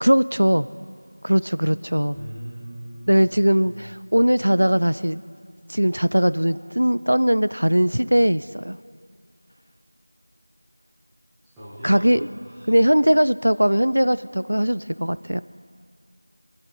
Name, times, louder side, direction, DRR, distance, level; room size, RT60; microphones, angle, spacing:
voice 1, 0.0-0.7 1.2-2.2 3.1-5.2 5.7-8.8 11.8-12.2 12.7-15.4, equal, 85° right, 16 dB, 0.5 m, -20 dB
voice 2, 2.1-3.8 11.6-12.7, equal, ahead, -16 dB, 0.9 m, -40 dB
26.5 x 11.0 x 4.0 m, 2.1 s
figure-of-eight pair, 180°, 0 cm